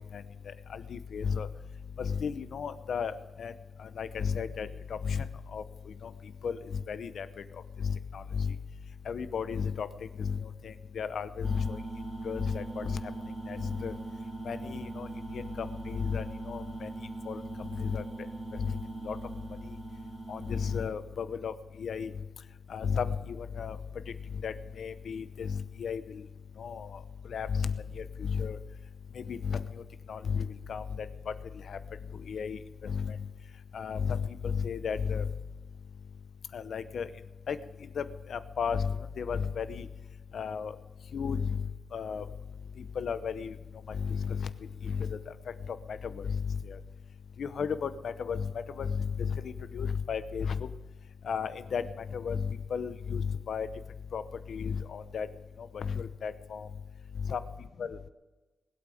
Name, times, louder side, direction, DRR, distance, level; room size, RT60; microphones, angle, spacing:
voice 1, 0.7-1.5 2.0-3.5 4.0-4.7 5.0-5.3 5.5-5.6 6.4-6.6 6.9-7.3 7.8-8.5 9.1-9.9 10.2-10.4 10.6-11.8 12.2-13.0 13.5-13.9 14.4-15.1 15.3-16.9 17.3-17.4 17.8-18.0 18.6-18.8 19.1-19.2 20.3-21.5 21.8-22.1 22.7-23.8 24.4-26.0 26.6-26.9 27.3-28.6 29.2-29.6 30.1-31.3 31.7-31.8 32.3-33.2 33.7-35.3 36.5-37.1 37.5-37.6 38.0-38.1 38.3-39.9 40.3-40.7 41.1-41.6 41.9-42.2 43.0-43.5 43.9-44.5 44.8-45.2 46.1-46.4 46.7-46.8 47.4-48.5 48.8-50.7 51.3-51.8 52.1-53.7 54.1-54.2 54.5-55.3 55.7-56.7 57.3-57.4 57.8-58.0, left 6 dB, 65° left, 13 dB, 0.8 m, -33 dB
sound 1, 11.4-20.9, right 3 dB, 45° right, 2.5 m, -41 dB
19.5 x 8.6 x 7.7 m, 1.2 s
wide cardioid pair, 160°, 0 cm